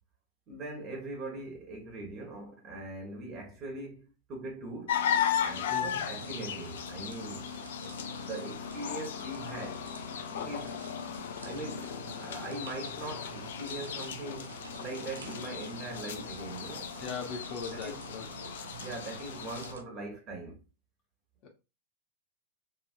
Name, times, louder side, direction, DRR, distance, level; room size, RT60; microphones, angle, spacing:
voice 1, 0.5-5.0 5.4-7.5 8.1-9.8 10.3-10.8 11.4-16.9 17.7-18.1 18.8-20.6, right 2 dB, 35° right, 1.3 m, -41 dB
sound 1, 4.9-19.7, left 9 dB, 70° left, 0.4 m, -36 dB
voice 2, 5.7-6.1 17.0-18.5 21.4-21.5, left 6 dB, 45° left, 1.0 m, -40 dB
sound 2, 5.8-19.8, right 5 dB, 80° right, 0.4 m, -48 dB
2.9 x 2.7 x 2.5 m
hypercardioid pair, 100°, 0 cm